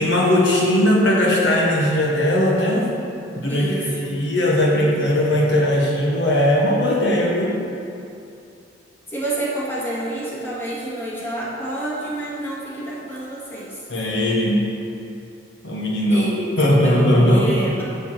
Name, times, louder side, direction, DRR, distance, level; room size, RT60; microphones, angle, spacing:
voice 1, 0.0-2.9 3.3-7.5 13.9-14.6 15.6-16.3 16.6-17.5, left 1 dB, 65° left, -3 dB, 1.4 m, -18 dB
voice 2, 3.5-4.2 9.1-13.8 16.1-17.9, right 1 dB, 10° left, -7 dB, 2.0 m, -28 dB
7.1 x 6.8 x 7.5 m, 2.7 s
head